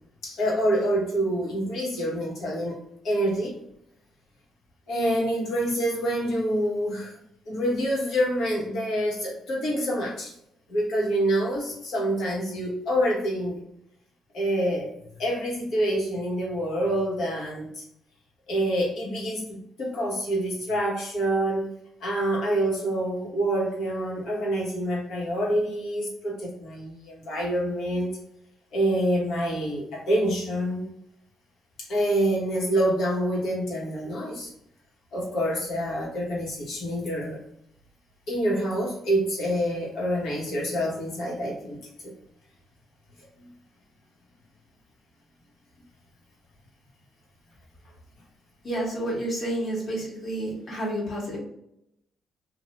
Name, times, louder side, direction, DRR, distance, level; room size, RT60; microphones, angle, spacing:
voice 1, 0.2-3.5 4.9-7.2 7.5-10.3 10.7-13.6 14.3-14.9 15.2-17.8 18.5-21.7 22.0-28.2 28.7-30.9 31.8-34.5 35.1-37.4 38.3-42.1 43.4-43.5, right 1 dB, 75° left, -3 dB, 1.3 m, -27 dB
voice 2, 48.6-51.4, right 1 dB, 45° left, -3 dB, 1.4 m, -30 dB
2.6 x 2.3 x 3.0 m, 0.77 s
cardioid pair, 90°, 0 cm